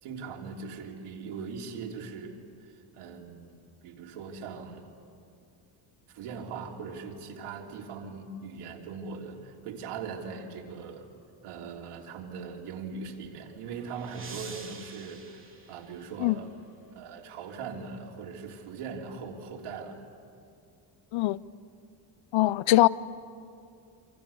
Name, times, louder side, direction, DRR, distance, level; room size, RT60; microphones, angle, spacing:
voice 1, 0.0-2.4 2.6-3.5 3.8-4.9 6.1-11.1 11.4-16.5 16.9-20.0, right 5 dB, 85° right, 0 dB, 3.4 m, -40 dB
sound 1, 13.1-16.5, right 4 dB, 25° right, 3.4 m, -48 dB
voice 2, 22.3-22.9, left 18 dB, 65° left, 19 dB, 0.7 m, -22 dB
27.5 x 27.0 x 7.1 m, 2.4 s
cardioid pair, 115°, 50 cm